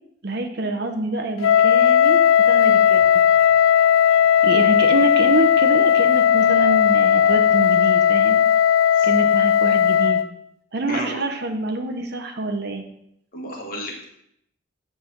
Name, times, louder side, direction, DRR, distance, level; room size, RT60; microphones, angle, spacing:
voice 1, 0.2-3.0 4.4-8.4 9.0-10.2 10.7-12.8, right 2 dB, 55° right, 4 dB, 0.7 m, -26 dB
Wind instrument woodwind instrument, 1.4-10.3, left 9 dB, 85° left, 0.4 m, -16 dB
Wind, 2.5-8.5, right 2 dB, 80° right, 0.9 m, -36 dB
voice 2, 10.9-11.2 13.3-14.1, equal, 45° left, -1 dB, 1.6 m, -32 dB
7.6 x 3.3 x 5.8 m, 0.75 s
head